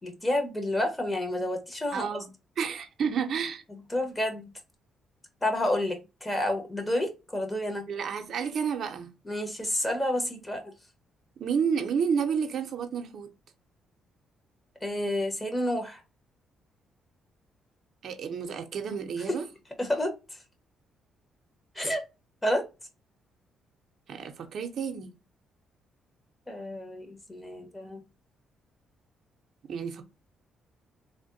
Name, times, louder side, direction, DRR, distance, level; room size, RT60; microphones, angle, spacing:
voice 1, 0.0-2.1 3.9-4.5 5.4-7.9 9.2-10.6 14.8-16.0 19.3-19.4 19.8-20.1 21.7-22.0 22.4-22.6 26.5-28.0, left 1 dB, 15° left, 1.1 m, -29 dB
voice 2, 1.9-2.3 2.6-3.6 7.9-9.1 11.4-13.3 18.0-19.5 24.1-25.1 29.7-30.0, right 6 dB, 65° right, 0.6 m, -30 dB
3.4 x 2.1 x 2.6 m
cardioid pair, 90°, 0 cm